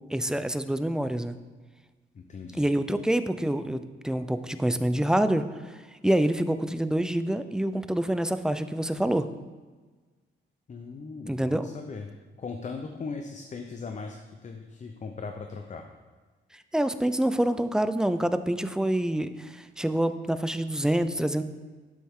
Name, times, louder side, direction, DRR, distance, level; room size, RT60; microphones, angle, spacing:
voice 1, 0.1-1.4 2.6-5.8 6.0-9.3 11.3-11.7 16.5-21.4, right 1 dB, 5° right, 11 dB, 0.5 m, -26 dB
voice 2, 2.1-2.7 10.7-12.1 12.4-15.8, left 4 dB, 35° left, 4 dB, 0.7 m, -39 dB
12.0 x 7.5 x 3.7 m, 1.3 s
cardioid pair, 110°, 20 cm